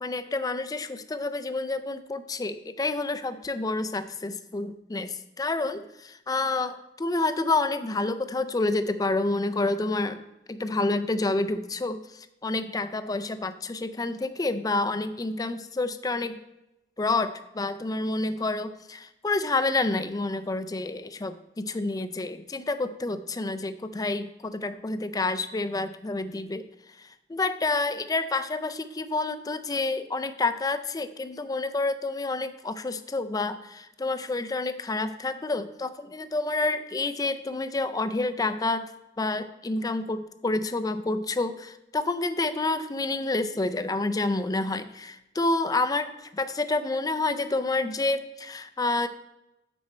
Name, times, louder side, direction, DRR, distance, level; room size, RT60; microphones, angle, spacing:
voice 1, 0.0-10.2 10.5-12.0 12.4-16.3 17.0-26.7 27.3-38.9 39.2-49.1, left 2 dB, 20° left, 11 dB, 0.4 m, -28 dB
9.5 x 4.2 x 4.3 m, 0.90 s
head